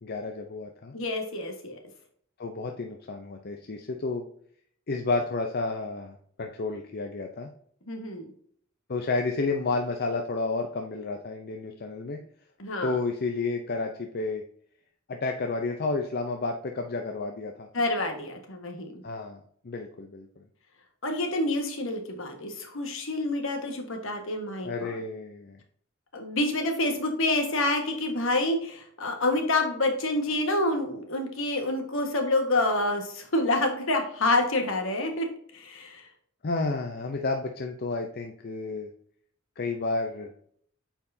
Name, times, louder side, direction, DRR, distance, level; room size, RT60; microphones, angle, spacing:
voice 1, 0.0-0.9 2.4-4.2 4.9-7.5 8.9-12.2 12.8-14.4 15.1-17.7 19.0-20.3 24.6-25.6 36.4-38.9 39.6-40.3, left 3 dB, 50° left, 4 dB, 0.6 m, -31 dB
voice 2, 0.9-1.8 7.9-8.3 12.6-12.9 17.7-19.0 21.0-25.0 26.1-35.3 35.5-36.0, left 2 dB, 70° left, 4 dB, 1.5 m, -28 dB
8.8 x 4.8 x 2.7 m, 0.63 s
head